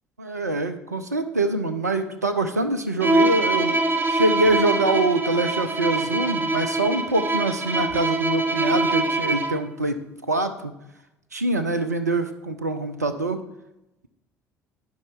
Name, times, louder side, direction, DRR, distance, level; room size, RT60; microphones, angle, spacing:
voice 1, 0.2-3.8 4.1-10.0 10.3-10.7 11.3-13.4, right 2 dB, 85° right, 9 dB, 0.6 m, -24 dB
Bowed string instrument, 3.0-9.7, right 2 dB, 25° right, 0.9 m, -24 dB
10.5 x 5.5 x 4.8 m, 0.91 s
figure-of-eight pair, 55°, 9 cm